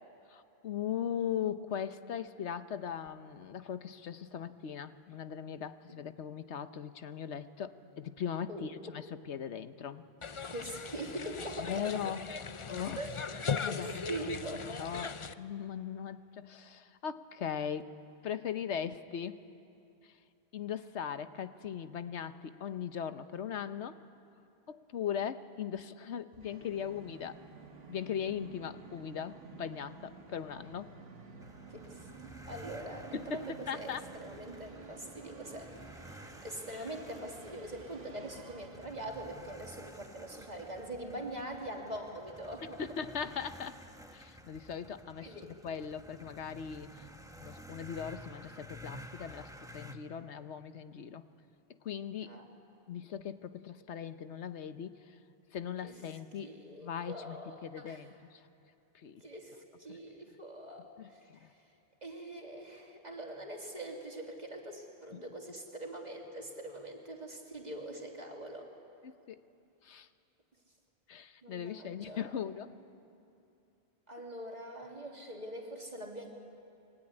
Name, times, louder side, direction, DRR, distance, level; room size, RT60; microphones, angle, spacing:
voice 1, 0.3-10.1 11.6-12.2 12.7-13.0 13.6-13.9 14.8-17.9 18.2-19.4 20.0-20.1 20.5-24.0 24.7-27.4 27.9-30.9 33.1-34.1 42.8-43.8 44.1-47.1 47.4-51.2 51.7-52.3 52.9-55.2 55.5-56.5 56.8-57.4 57.6-58.4 58.9-59.2 59.9-60.0 61.0-61.5 65.1-65.2 69.0-69.4 69.8-70.1 71.1-72.7, left 8 dB, 85° left, 11 dB, 1.2 m, -39 dB
voice 2, 8.5-8.9 10.5-11.7 13.0-13.2 13.7-14.7 31.7-32.1 32.5-35.7 36.4-42.8 45.2-45.5 52.3-52.4 55.8-58.0 59.2-61.6 62.0-68.7 71.4-72.3 74.1-76.3, right 1 dB, 40° right, 1 dB, 3.2 m, -43 dB
sound 1, 10.2-15.3, left 5 dB, 35° left, 0.6 m, -38 dB
Musical instrument, 26.3-40.0, right 4 dB, 65° right, 1.9 m, -52 dB
sound 2, 31.4-50.0, equal, 5° right, 1.3 m, -52 dB
26.0 x 22.0 x 9.8 m, 2.6 s
omnidirectional pair, 1.1 m